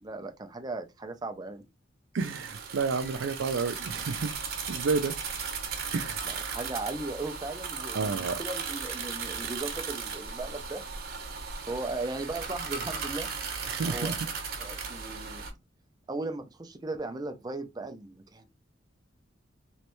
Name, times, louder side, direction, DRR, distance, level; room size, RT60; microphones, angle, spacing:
voice 1, 0.0-1.6 6.2-10.8 11.7-13.4 13.8-14.2 14.6-15.5 16.1-18.5, right 2 dB, 20° right, 0.5 m, -37 dB
voice 2, 2.1-4.3 4.7-5.2 5.9-6.5 7.9-8.4 13.7-14.3, right 4 dB, 75° right, 0.5 m, -31 dB
sound 1, 2.2-15.5, right 5 dB, 55° right, 0.9 m, -36 dB
3.1 x 3.1 x 3.0 m
head